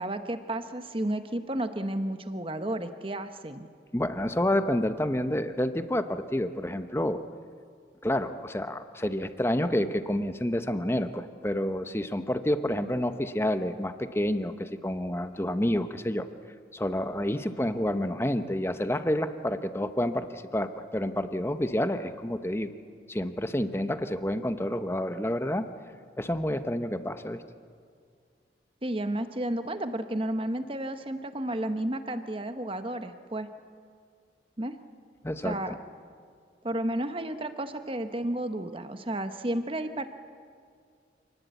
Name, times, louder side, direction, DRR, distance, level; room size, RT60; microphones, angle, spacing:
voice 1, 0.0-3.7 28.8-33.5 34.6-34.7 35.4-35.7 36.6-40.1, right 1 dB, 30° right, 9 dB, 1.0 m, -32 dB
voice 2, 3.9-7.2 8.0-16.3 16.7-22.7 23.1-25.7 26.2-27.4 35.2-35.8, left 1 dB, 15° left, 9 dB, 0.8 m, -29 dB
27.5 x 19.0 x 8.3 m, 2.2 s
head